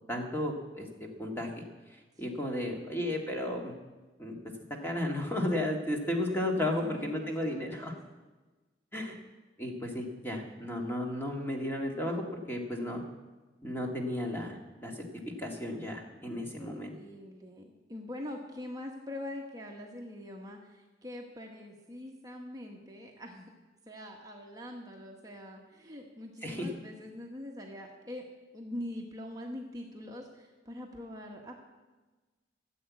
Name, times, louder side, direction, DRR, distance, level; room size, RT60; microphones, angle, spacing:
voice 1, 0.1-0.9 1.2-1.6 1.9-3.7 4.2-4.4 4.8-7.9 8.9-9.2 9.6-13.0 13.6-15.0 15.4-17.0 26.4-26.7, left 1 dB, 10° left, 1 dB, 1.8 m, -34 dB
voice 2, 6.3-8.0 16.2-23.5 23.9-28.2 28.5-31.6, left 1 dB, 20° right, 0 dB, 1.2 m, -44 dB
14.5 x 7.8 x 8.3 m, 1.2 s
head